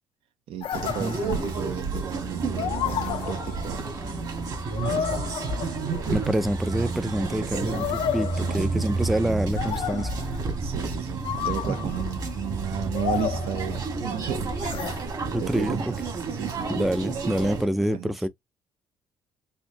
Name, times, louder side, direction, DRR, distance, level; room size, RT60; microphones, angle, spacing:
voice 1, 0.5-3.9 4.8-5.2 7.4-7.8 8.3-8.6 10.6-14.5 15.3-16.7 17.6-18.1, right 10 dB, 75° right, 0.7 m, -34 dB
sound 1, 0.6-1.8 2.6-4.0 4.8-6.2 7.5-9.1 9.6-10.5 11.2-12.1 12.9-14.1 14.6-15.0, left 10 dB, 65° left, 0.4 m, -32 dB
sound 2, 0.7-17.7, right 4 dB, 45° right, 1.5 m, -30 dB
voice 2, 6.1-7.9 8.1-10.1 11.7-11.9 15.3-15.8 16.8-18.3, equal, ahead, 0.4 m, -26 dB
4.4 x 2.6 x 2.7 m
cardioid pair, 135°, 10 cm